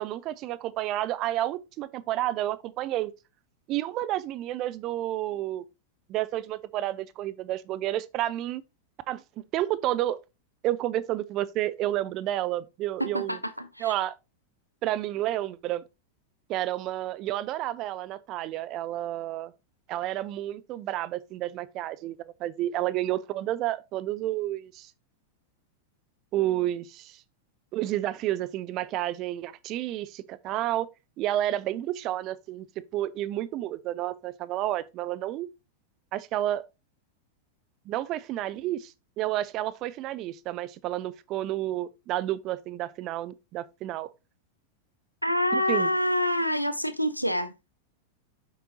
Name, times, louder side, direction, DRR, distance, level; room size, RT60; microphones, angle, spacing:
voice 1, 0.0-3.1 3.7-5.6 6.1-8.6 9.1-9.2 9.5-10.2 10.6-13.4 13.8-14.2 14.8-15.8 16.5-19.5 19.9-24.9 26.3-27.2 27.7-30.9 31.2-32.7 32.9-35.5 36.1-36.6 37.9-44.1 45.5-45.9, right 14 dB, 35° right, 0.5 m, -30 dB
voice 2, 13.0-13.9 45.2-47.5, left 1 dB, 90° left, 0.5 m, -27 dB
7.6 x 5.1 x 2.8 m
figure-of-eight pair, 90°, 0 cm